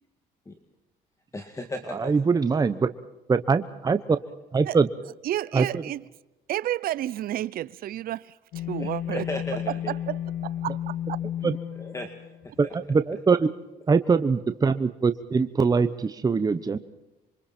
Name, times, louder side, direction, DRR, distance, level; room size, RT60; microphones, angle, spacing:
voice 1, 1.3-2.1 8.8-9.9 11.8-12.1 12.4-12.5, left 2 dB, 20° left, 2.1 m, -35 dB
voice 2, 1.9-2.9 3.3-4.2 4.5-4.9 5.5-5.8 11.4-11.6 12.6-13.5 13.9-16.8, right 5 dB, 20° right, 1.0 m, -23 dB
voice 3, 5.3-6.0 6.5-8.4 8.7-9.3 9.9-10.9, right 13 dB, 60° right, 0.7 m, -31 dB
sound 1, 8.5-12.8, left 10 dB, 85° left, 1.9 m, -33 dB
27.5 x 24.0 x 4.4 m
cardioid pair, 110°, 17 cm